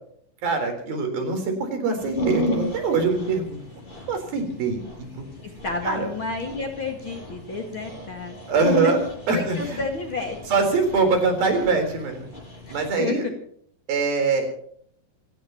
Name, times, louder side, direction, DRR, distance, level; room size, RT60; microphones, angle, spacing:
voice 1, 0.4-3.6 4.1-4.8 5.1-5.3 5.9-6.1 8.5-9.0 9.3-9.8 10.5-12.3 12.7-13.2 13.9-14.6, right 4 dB, 75° right, 5 dB, 5.7 m, -23 dB
Dog, 2.0-12.9, equal, 10° left, 7.8 m, -33 dB
voice 2, 5.6-8.7 9.3-10.4 12.7-13.3, left 3 dB, 40° left, 3 dB, 2.2 m, -31 dB
27.0 x 16.0 x 3.0 m, 0.63 s
omnidirectional pair, 4.2 m